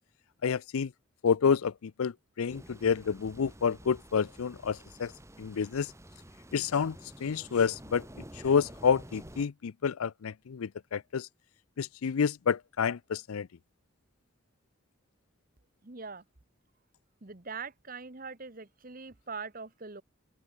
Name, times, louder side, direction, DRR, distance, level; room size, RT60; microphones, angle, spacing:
voice 1, 0.4-0.9 1.2-5.1 5.4-5.9 6.5-7.0 7.2-8.0 8.4-11.3 11.8-13.5, left 6 dB, 90° left, 0.5 m, -29 dB
sound 1, 2.5-9.5, right 1 dB, 15° right, 3.1 m, -50 dB
voice 2, 15.8-16.2 17.2-20.0, right 4 dB, 40° right, 1.2 m, -42 dB
open air
head